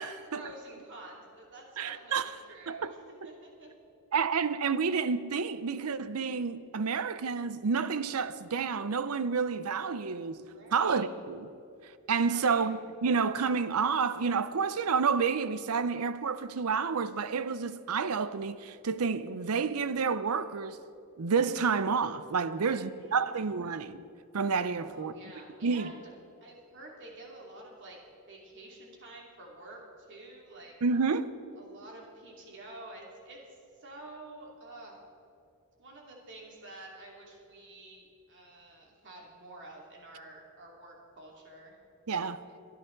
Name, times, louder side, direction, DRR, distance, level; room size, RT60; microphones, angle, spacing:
voice 1, 0.0-3.7 10.5-11.1 12.3-12.7 22.6-23.5 24.9-26.0 26.4-28.0 28.3-30.8 31.5-35.0 35.8-41.8, right 2 dB, 55° right, 2.7 m, -49 dB
voice 2, 1.8-2.3 2.7-2.9 4.1-10.5 10.7-11.5 12.1-20.8 21.2-24.1 24.3-25.1 25.6-25.9 30.8-31.3 42.1-42.4, right 5 dB, 75° right, 0.6 m, -29 dB
23.0 x 10.5 x 3.9 m
head